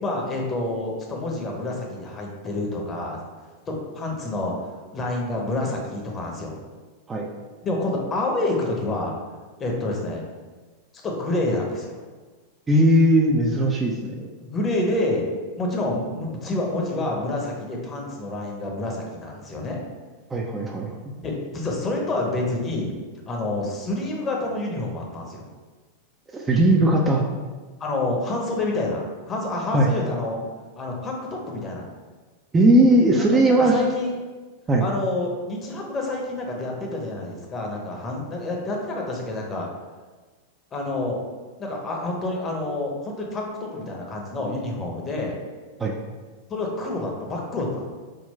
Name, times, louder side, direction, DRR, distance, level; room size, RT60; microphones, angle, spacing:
voice 1, 0.0-3.2 3.7-6.6 7.6-9.1 9.6-10.2 11.0-12.0 14.4-15.2 15.6-19.8 21.2-22.9 23.3-25.4 27.8-30.4 30.8-31.9 33.6-34.1 34.8-39.7 40.7-41.2 41.6-45.4 46.5-47.8, left 2 dB, 25° left, -1 dB, 0.8 m, -28 dB
voice 2, 12.7-14.3 20.3-20.9 26.3-27.2 29.7-29.9 32.5-33.7 34.7-34.8 45.8-45.9, right 1 dB, 15° right, -1 dB, 0.4 m, -18 dB
3.7 x 2.2 x 4.2 m, 1.3 s
figure-of-eight pair, 90°, 0 cm